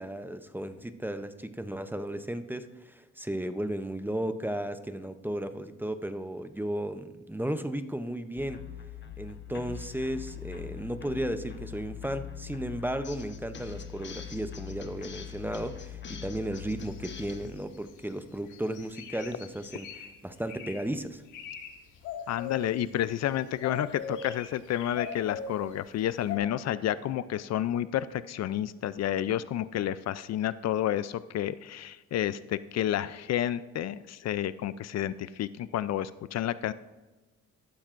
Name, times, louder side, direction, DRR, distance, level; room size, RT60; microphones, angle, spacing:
voice 1, 0.0-8.6 9.2-21.2, right 1 dB, 5° right, 10 dB, 0.6 m, -34 dB
sound 1, 8.4-17.5, left 9 dB, 40° left, 1.2 m, -42 dB
sound 2, 16.9-18.1 18.5-20.1 20.5-20.8 21.2-21.7 21.9-23.2 23.6-25.7 26.3-26.4, left 7 dB, 90° left, 1.6 m, -40 dB
voice 2, 22.3-36.7, left 11 dB, 60° left, 16 dB, 0.4 m, -30 dB
13.5 x 12.0 x 2.5 m, 1.2 s
cardioid pair, 90°, 30 cm